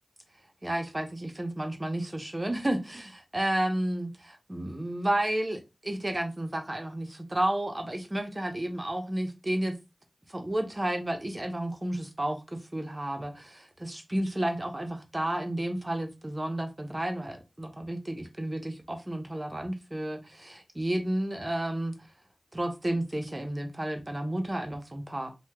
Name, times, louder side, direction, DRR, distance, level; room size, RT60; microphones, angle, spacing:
voice 1, 0.6-9.7 10.3-21.9 22.5-25.3, right 1 dB, 30° right, 0.7 m, -32 dB
2.8 x 2.2 x 3.4 m
wide cardioid pair, 45°, 0 cm